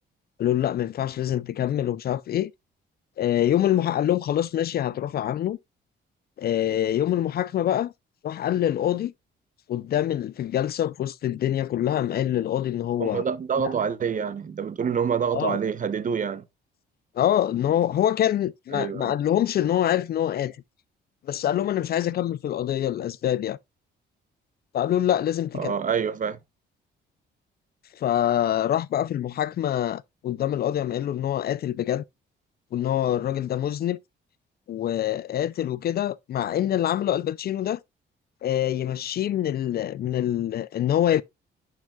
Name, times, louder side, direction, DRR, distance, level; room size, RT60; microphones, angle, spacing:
voice 1, 0.4-2.5 3.2-5.6 6.4-7.9 8.2-9.1 9.7-13.2 13.6-13.7 15.3-15.6 17.2-20.6 21.2-23.6 24.7-25.8 27.9-32.0 32.7-34.0 34.7-37.8 38.4-41.2, left 11 dB, 50° left, 0.4 m, -25 dB
voice 2, 13.0-16.5 18.7-19.1 25.6-26.4, right 7 dB, 40° right, 0.7 m, -27 dB
10.5 x 4.6 x 2.3 m
cardioid pair, 90°, 20 cm